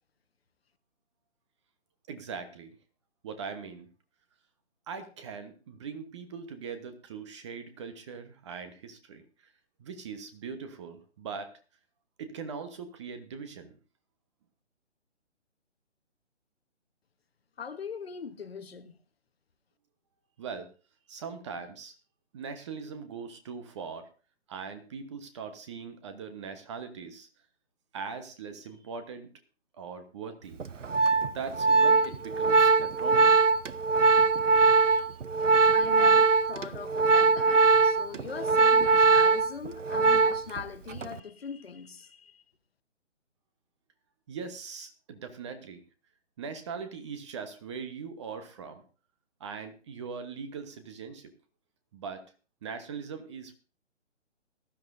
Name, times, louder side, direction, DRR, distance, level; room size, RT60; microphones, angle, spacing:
voice 1, 2.1-2.7 3.2-3.9 4.9-9.5 9.8-11.5 12.2-13.8 20.4-20.7 21.1-21.9 22.3-24.1 24.5-27.3 27.9-29.3 29.8-30.6 31.3-33.4 44.3-45.8 46.4-48.8 49.4-51.3 51.9-52.2 52.6-53.5, right 5 dB, 25° right, 1.1 m, -40 dB
voice 2, 17.6-19.0 34.9-35.1 35.7-42.4, left 6 dB, 55° left, 1.3 m, -41 dB
Organ, 30.6-40.6 40.9-41.2, right 4 dB, 90° right, 0.7 m, -22 dB
18.5 x 12.5 x 2.6 m
figure-of-eight pair, 145°, 36 cm